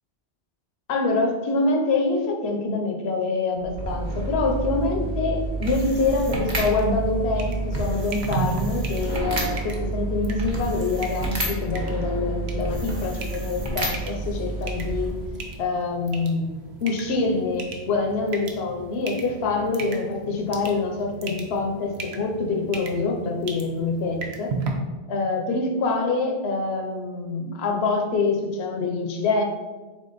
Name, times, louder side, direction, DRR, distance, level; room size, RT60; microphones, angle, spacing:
voice 1, 0.9-15.1 15.6-16.5 16.8-24.5 25.1-29.4, left 3 dB, 70° left, 2 dB, 0.9 m, -25 dB
sound 1, 3.6-15.5, right 2 dB, 45° right, 0.9 m, -29 dB
sound 2, 6.5-24.7, right 3 dB, 70° right, 0.9 m, -37 dB
3.6 x 3.5 x 4.0 m, 1.3 s
omnidirectional pair, 1.1 m